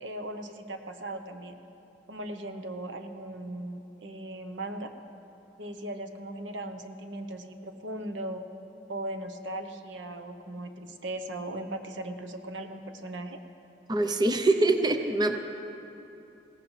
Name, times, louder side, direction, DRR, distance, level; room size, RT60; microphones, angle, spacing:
voice 1, 0.0-1.6 2.1-4.9 5.6-8.4 8.9-13.4, right 1 dB, 90° right, 6 dB, 0.9 m, -38 dB
voice 2, 13.9-15.4, right 2 dB, 25° right, 7 dB, 0.6 m, -24 dB
21.0 x 17.0 x 3.2 m, 2.9 s
head